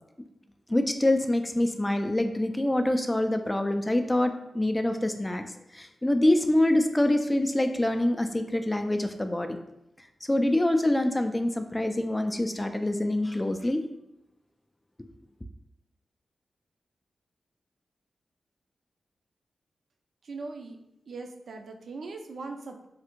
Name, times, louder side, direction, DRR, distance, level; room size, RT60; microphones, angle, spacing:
voice 1, 0.7-9.6 10.0-13.9, left 1 dB, 20° left, 6 dB, 0.3 m, -25 dB
voice 2, 20.2-20.8 21.1-22.9, right 3 dB, 75° right, 4 dB, 0.4 m, -40 dB
3.2 x 2.4 x 3.0 m, 0.85 s
cardioid pair, 45°, 0 cm